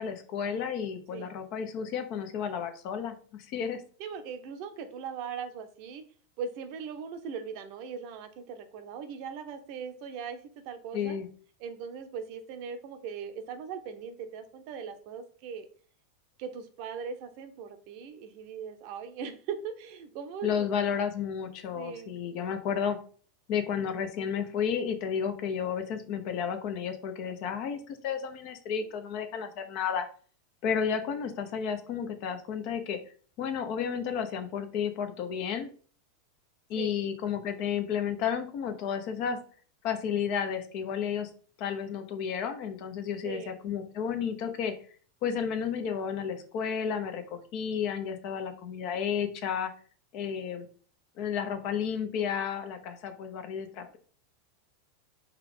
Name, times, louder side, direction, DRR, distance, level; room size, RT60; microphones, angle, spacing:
voice 1, 0.0-3.8 10.9-11.3 20.4-23.0 23.5-30.1 30.6-33.0 33.4-35.7 36.7-39.4 39.8-41.3 41.6-44.7 45.2-49.7 50.1-50.7 51.2-54.0, left 7 dB, 55° left, 7 dB, 0.7 m, -32 dB
voice 2, 4.0-6.1 6.4-10.4 10.6-11.2 11.6-15.7 16.4-20.7 21.7-22.1 36.8-37.0 43.2-43.6, right 6 dB, 60° right, 8 dB, 0.6 m, -39 dB
4.5 x 2.3 x 3.7 m, 0.43 s
hypercardioid pair, 110°, 0 cm